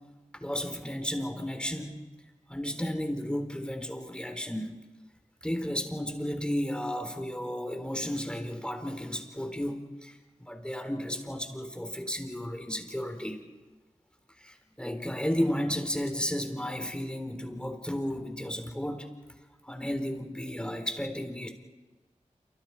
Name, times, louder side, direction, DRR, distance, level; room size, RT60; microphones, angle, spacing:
voice 1, 0.3-2.0 2.5-4.8 5.4-10.2 10.5-13.4 14.4-19.1 19.6-21.5, equal, 5° left, 5 dB, 4.1 m, -33 dB
28.0 x 25.5 x 5.0 m, 1.3 s
cardioid pair, 40°, 13 cm